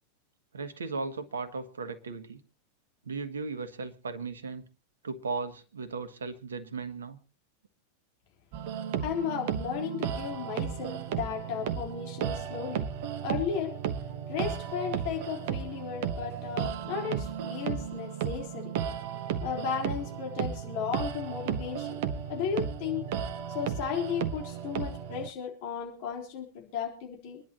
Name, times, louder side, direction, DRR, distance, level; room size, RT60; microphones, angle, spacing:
voice 1, 0.5-2.4 3.0-4.6 5.0-7.2, right 4 dB, 70° right, 9 dB, 1.5 m, -36 dB
sound 1, 8.5-25.3, right 8 dB, 50° right, 1.1 m, -34 dB
voice 2, 9.0-12.8 13.2-13.8 14.3-18.7 19.4-22.0 22.3-23.1 23.5-27.4, left 7 dB, 45° left, 1 dB, 3.7 m, -35 dB
26.0 x 11.0 x 2.9 m, 0.39 s
figure-of-eight pair, 90°, 0 cm